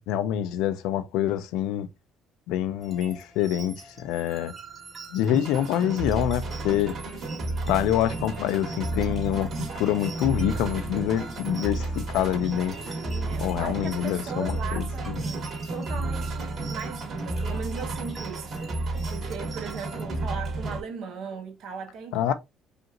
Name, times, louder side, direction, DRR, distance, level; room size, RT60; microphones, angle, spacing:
voice 1, 0.1-1.9 2.5-4.5 5.1-7.0 7.7-12.9 13.4-15.2 22.1-22.3, left 11 dB, 90° left, 0.5 m, -26 dB
sound 1, 2.8-20.1, right 4 dB, 30° right, 1.9 m, -46 dB
sound 2, 5.3-20.8, right 2 dB, 45° right, 2.0 m, -32 dB
voice 2, 13.1-15.4 15.7-22.3, right 6 dB, 60° right, 1.3 m, -38 dB
5.1 x 2.5 x 2.9 m
cardioid pair, 145°, 0 cm